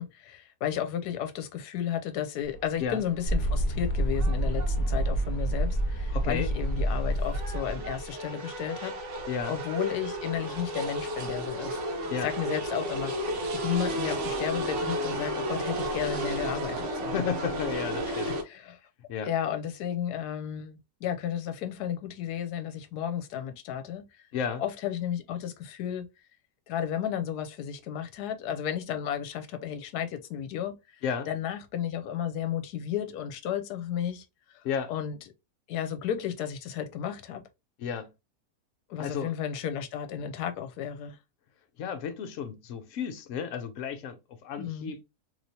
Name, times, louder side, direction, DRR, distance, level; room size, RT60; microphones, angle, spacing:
voice 1, 0.0-8.9 9.5-17.2 18.1-18.8 19.2-24.3 24.6-26.0 26.7-31.0 31.3-34.6 34.9-35.2 35.7-37.4 38.9-41.2 44.6-44.9, left 9 dB, 80° left, 1.1 m, -33 dB
sound 1, 2.4-18.4, right 1 dB, 55° right, 1.0 m, -34 dB
sound 2, 3.2-8.1, right 1 dB, 35° left, 1.4 m, -28 dB
voice 2, 6.1-6.5 9.3-9.5 12.1-12.3 17.1-18.3 19.1-19.3 24.3-24.6 31.0-31.3 34.6-34.9 37.8-38.1 39.0-39.3 41.8-45.0, left 7 dB, 65° left, 0.9 m, -33 dB
3.2 x 2.9 x 2.7 m
omnidirectional pair, 1.7 m